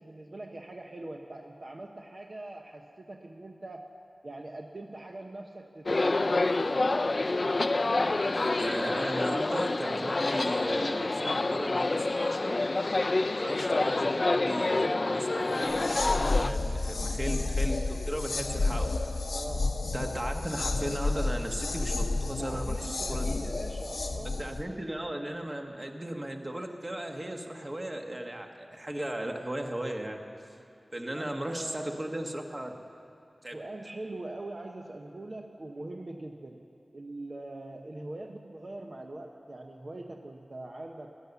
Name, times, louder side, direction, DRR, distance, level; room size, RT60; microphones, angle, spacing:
voice 1, 0.0-3.8 4.2-6.5 19.3-19.8 22.4-24.4 31.1-32.0 33.5-36.7 36.9-41.1, right 2 dB, 55° right, 1 dB, 0.9 m, -42 dB
sound 1, 5.9-16.5, left 2 dB, 55° left, 0.4 m, -27 dB
voice 2, 8.6-12.6 13.3-18.9 19.9-23.3 24.4-30.2 30.9-32.7 33.4-33.6, right 1 dB, 30° right, 3 dB, 1.4 m, -36 dB
sound 2, 15.6-24.6, left 3 dB, 85° left, 0.8 m, -31 dB
16.5 x 11.0 x 7.1 m, 2.6 s
wide cardioid pair, 55°, 0 cm